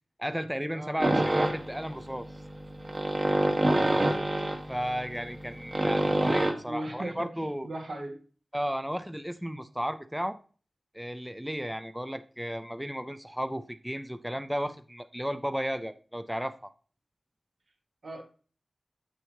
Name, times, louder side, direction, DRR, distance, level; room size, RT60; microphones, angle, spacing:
voice 1, 0.2-2.3 4.7-7.7 8.5-10.4 10.9-16.7, equal, 5° right, 0.4 m, -34 dB
sound 1, 1.0-6.5, right 1 dB, 35° right, 1.1 m, -27 dB
voice 2, 6.7-8.2 18.0-18.2, right 1 dB, 80° right, 1.9 m, -37 dB
7.5 x 6.4 x 2.9 m
wide cardioid pair, 90°, 0 cm